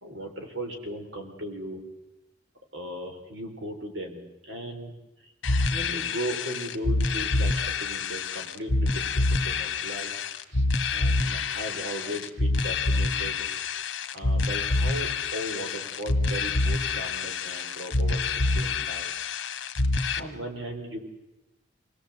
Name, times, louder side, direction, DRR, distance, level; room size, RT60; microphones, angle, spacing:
voice 1, 0.0-1.8 2.7-4.9 5.2-5.3 5.7-10.1 10.5-10.7 10.9-13.5 14.1-19.1 20.2-21.0, equal, 70° right, 3 dB, 3.7 m, -37 dB
sound 1, 5.4-20.2, left 3 dB, 70° left, 1.6 m, -27 dB
26.5 x 18.0 x 8.0 m, 1.0 s
head